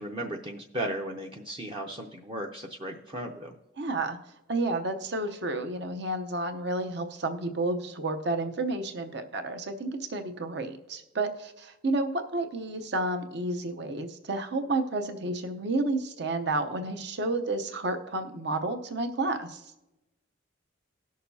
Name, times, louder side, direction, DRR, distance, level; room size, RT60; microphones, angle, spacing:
voice 1, 0.0-3.6, right 1 dB, 25° right, 1 dB, 0.6 m, -36 dB
voice 2, 3.8-4.2 4.5-19.6, right 2 dB, 60° right, 7 dB, 0.8 m, -31 dB
18.5 x 6.5 x 2.7 m, 0.96 s
head